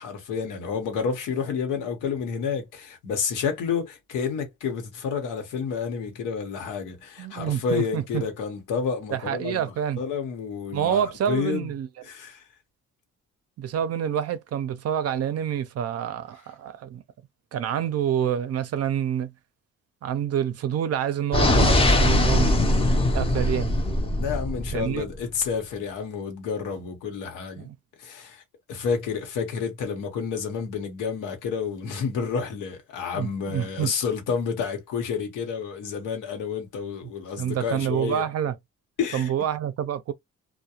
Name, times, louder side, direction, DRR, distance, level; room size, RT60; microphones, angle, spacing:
voice 1, 0.0-11.7 12.1-12.4 24.2-27.7 28.0-28.4 28.7-38.2 39.0-39.3, left 6 dB, 90° left, 0.9 m, -30 dB
voice 2, 7.2-8.2 9.1-10.0 10.7-11.9 13.6-17.0 17.5-19.3 20.0-22.8 23.1-23.7 24.7-25.0 27.6-27.7 33.1-33.9 37.4-38.5 39.1-40.1, right 9 dB, 55° right, 0.5 m, -27 dB
sound 1, 21.3-25.2, left 1 dB, 20° left, 0.6 m, -21 dB
2.3 x 2.1 x 2.8 m
cardioid pair, 90°, 30 cm